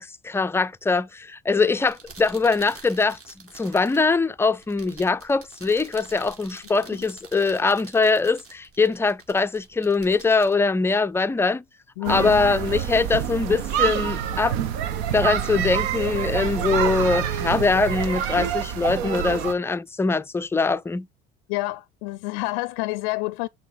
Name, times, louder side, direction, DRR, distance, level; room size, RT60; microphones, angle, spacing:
voice 1, 0.0-3.2 3.6-11.6 12.1-14.5 15.1-21.1, left 4 dB, 10° left, 0.3 m, -22 dB
sound 1, 1.8-11.5, right 4 dB, 45° right, 2.4 m, -48 dB
voice 2, 12.0-12.4 21.5-23.5, left 20 dB, 70° left, 0.4 m, -28 dB
sound 2, 12.0-19.5, right 9 dB, 75° right, 0.8 m, -27 dB
6.2 x 4.0 x 6.0 m
hypercardioid pair, 60°, 32 cm